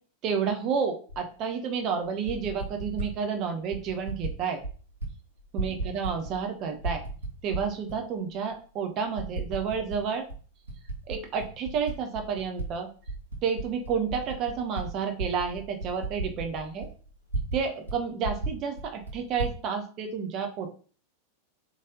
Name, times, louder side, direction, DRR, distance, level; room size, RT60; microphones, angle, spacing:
voice 1, 0.2-4.6 5.5-7.0 7.4-10.3 11.1-12.9 13.4-16.9 17.5-20.7, right 6 dB, 35° right, 5 dB, 0.8 m, -30 dB
Typing, 1.1-1.2 2.1-3.1 3.7-4.3 4.6-5.1 5.4-6.5 6.8-8.0 8.5-8.6 9.2-10.0 10.3-12.7 13.0-17.6 17.9-18.0 18.2-19.6, right 3 dB, 75° right, 1.4 m, -34 dB
4.1 x 3.2 x 3.7 m, 0.41 s
figure-of-eight pair, 90°, 0 cm